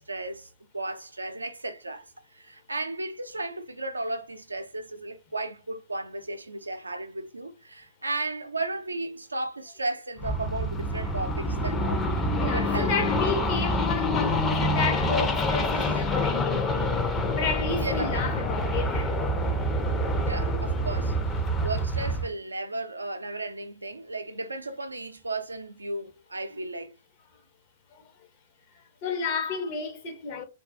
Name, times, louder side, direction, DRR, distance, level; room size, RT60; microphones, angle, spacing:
voice 1, 0.0-12.0 12.4-12.9 15.2-15.3 17.8-18.2 20.2-21.2 21.6-27.0, right 2 dB, 90° right, 0.4 m, -34 dB
sound 1, 10.2-22.3, left 1 dB, 15° left, 0.5 m, -26 dB
voice 2, 12.4-17.1 17.3-19.2 27.9-28.1 29.0-30.4, left 4 dB, 45° left, 0.8 m, -31 dB
2.3 x 2.2 x 2.5 m
figure-of-eight pair, 110°, 0 cm